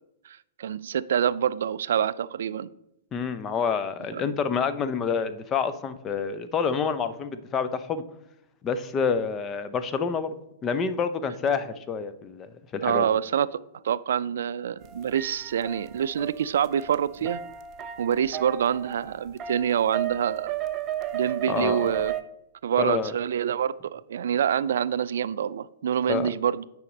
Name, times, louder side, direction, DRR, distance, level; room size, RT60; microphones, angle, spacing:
voice 1, 0.3-2.7 4.1-4.3 12.8-13.5 13.8-17.4 18.0-20.5 21.1-22.1 22.6-26.6, right 9 dB, 65° right, 17 dB, 0.3 m, -26 dB
voice 2, 3.1-8.0 8.6-13.1 21.5-21.9 22.8-23.1 26.1-26.3, left 6 dB, 25° left, 11 dB, 0.6 m, -28 dB
sound 1, 14.8-22.2, right 11 dB, 30° right, 0.7 m, -34 dB
9.5 x 4.9 x 4.1 m, 0.83 s
figure-of-eight pair, 105°, 0 cm